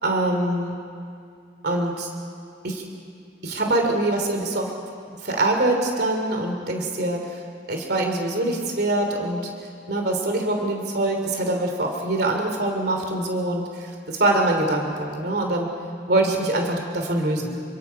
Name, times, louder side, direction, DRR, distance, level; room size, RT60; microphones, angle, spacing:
voice 1, 0.0-0.7 1.6-2.1 2.6-2.8 3.4-4.7 5.2-7.4 7.7-9.5 9.9-15.7 16.1-17.6, right 2 dB, 55° right, 3 dB, 3.0 m, -24 dB
28.0 x 23.5 x 5.8 m, 2.3 s
head